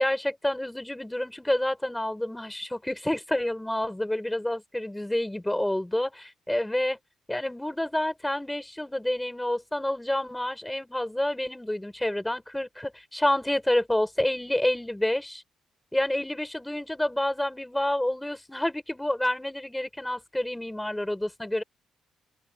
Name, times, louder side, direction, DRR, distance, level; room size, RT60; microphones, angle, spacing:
voice 1, 0.0-7.0 7.3-15.4 15.9-21.6, left 1 dB, 5° left, 6.6 m, -28 dB
cardioid pair, 90°, 0 cm